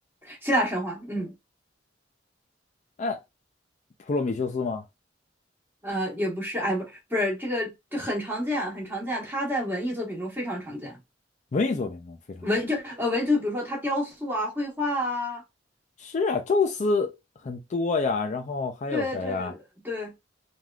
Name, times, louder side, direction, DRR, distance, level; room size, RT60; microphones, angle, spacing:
voice 1, 0.2-1.3 5.8-11.0 12.4-15.4 18.9-20.1, left 1 dB, 10° right, 1.2 m, -29 dB
voice 2, 4.1-4.8 11.5-12.5 16.0-17.2 17.4-19.5, left 4 dB, 40° left, 0.4 m, -27 dB
3.4 x 2.4 x 2.3 m
head